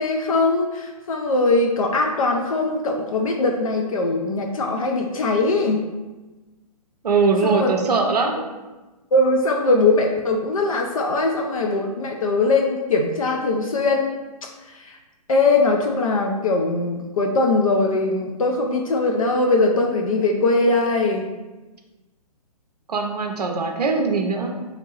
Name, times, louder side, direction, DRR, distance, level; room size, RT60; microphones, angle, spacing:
voice 1, 0.0-5.8 7.4-7.7 9.1-14.1 14.7-15.0 15.3-21.3, left 2 dB, 60° left, 2 dB, 0.4 m, -21 dB
voice 2, 7.0-8.4 22.9-24.5, right 4 dB, 75° right, 3 dB, 0.5 m, -21 dB
2.8 x 2.6 x 2.8 m, 1.2 s
figure-of-eight pair, 125°, 20 cm